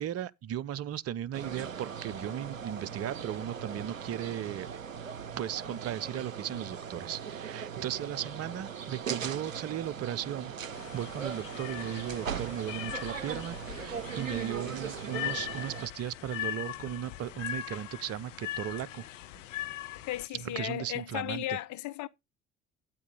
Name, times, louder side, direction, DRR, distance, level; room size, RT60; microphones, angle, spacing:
voice 1, 0.0-4.7 5.3-19.1 20.3-21.6, right 11 dB, 40° right, 0.7 m, -36 dB
sound 1, 1.3-15.9, right 7 dB, 90° right, 0.5 m, -39 dB
sound 2, 10.7-20.3, left 14 dB, 75° left, 0.7 m, -40 dB
voice 2, 20.1-22.1, left 15 dB, 50° left, 0.9 m, -35 dB
12.5 x 8.4 x 3.9 m
figure-of-eight pair, 55°, 38 cm